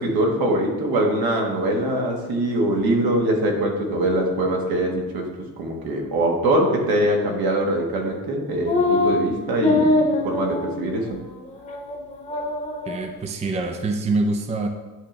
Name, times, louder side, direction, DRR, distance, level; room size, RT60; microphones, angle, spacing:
voice 1, 0.0-5.3 5.6-11.1, right 1 dB, 75° right, 1 dB, 1.5 m, -23 dB
sound 1, 8.7-9.2 9.6-10.8 11.1-11.2 11.6-12.0 12.2-13.1, left 2 dB, 20° left, 1.1 m, -22 dB
voice 2, 12.9-14.7, right 3 dB, 20° right, 5 dB, 0.5 m, -25 dB
9.9 x 3.3 x 3.8 m, 1.2 s
cardioid pair, 130°, 36 cm